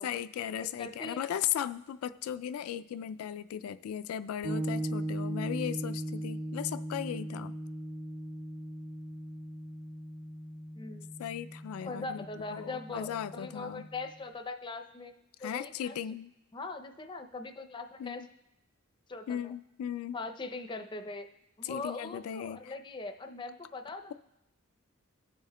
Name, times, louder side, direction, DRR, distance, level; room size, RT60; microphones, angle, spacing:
voice 1, 0.0-7.5 11.2-13.9 15.4-16.3 18.0-18.3 19.3-20.2 21.6-22.7, left 9 dB, 85° left, 13 dB, 0.3 m, -37 dB
voice 2, 0.8-1.2 10.8-11.1 11.8-15.1 15.4-16.0 16.5-18.2 19.1-19.5 20.1-21.3 21.6-24.1, left 3 dB, 20° left, 7 dB, 0.5 m, -41 dB
sound 1, 4.4-14.1, right 1 dB, 55° right, 1.5 m, -39 dB
18.5 x 7.1 x 2.2 m, 0.88 s
head